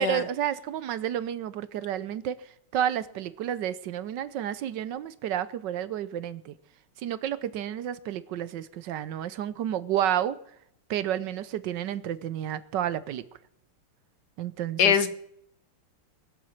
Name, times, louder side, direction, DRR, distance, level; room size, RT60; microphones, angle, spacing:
voice 1, 0.0-2.4 2.7-6.5 7.0-10.4 10.9-13.2 14.4-15.0, right 10 dB, 65° right, 15 dB, 1.2 m, -30 dB
voice 2, 14.8-15.2, left 7 dB, 55° left, 12 dB, 1.4 m, -22 dB
22.0 x 8.0 x 7.2 m, 0.73 s
omnidirectional pair, 2.3 m